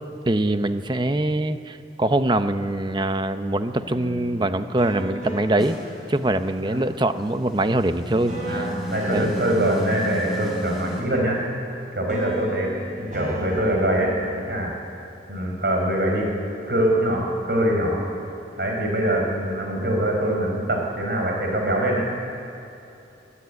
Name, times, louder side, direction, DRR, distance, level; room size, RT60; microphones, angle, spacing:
voice 1, 0.3-5.8 6.1-8.7 9.1-9.3, right 1 dB, 25° right, 10 dB, 0.7 m, -23 dB
sound 1, 3.8-6.9 8.3-11.8 12.1-14.6, equal, 45° right, 5.6 m, -36 dB
sound 2, 5.6-11.0, equal, ahead, 4.1 m, -34 dB
voice 2, 8.5-11.4 11.9-14.7 15.3-16.3 16.7-18.0 18.6-22.0, right 1 dB, 60° right, 1 dB, 4.6 m, -23 dB
21.0 x 13.0 x 9.6 m, 2.8 s
head